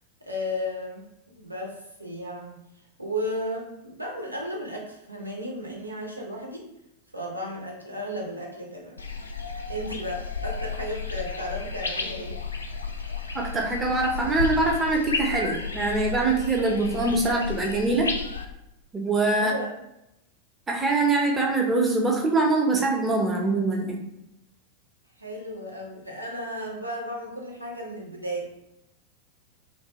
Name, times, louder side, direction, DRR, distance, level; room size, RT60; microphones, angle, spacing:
voice 1, 0.2-2.6 3.0-6.7 7.1-9.0 9.7-12.4 19.3-19.7 25.2-28.5, equal, 85° right, -1 dB, 0.6 m, -34 dB
sound 1, 9.0-18.4, left 4 dB, 75° left, 0.3 m, -33 dB
voice 2, 13.3-18.1 18.9-19.5 20.7-24.0, right 3 dB, 15° right, 0 dB, 0.7 m, -23 dB
2.5 x 2.2 x 2.9 m, 0.87 s
figure-of-eight pair, 90°, 0 cm